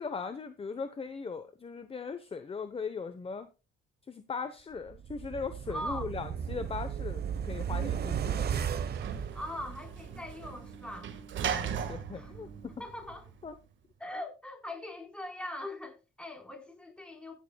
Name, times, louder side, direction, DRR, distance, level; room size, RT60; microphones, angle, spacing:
voice 1, 0.0-3.5 4.1-8.5 11.5-12.5 13.4-13.6, left 5 dB, 30° left, 1.0 m, -39 dB
sound 1, 4.9-10.1 10.4-10.5, right 8 dB, 55° right, 1.1 m, -35 dB
voice 2, 5.7-6.1 9.3-11.1 12.1-12.4 12.8-13.3 14.0-17.4, left 1 dB, 5° left, 4.2 m, -41 dB
Sliding door / Slam, 7.7-13.5, right 7 dB, 70° right, 1.7 m, -39 dB
15.5 x 10.0 x 2.3 m
cardioid pair, 90°, 20 cm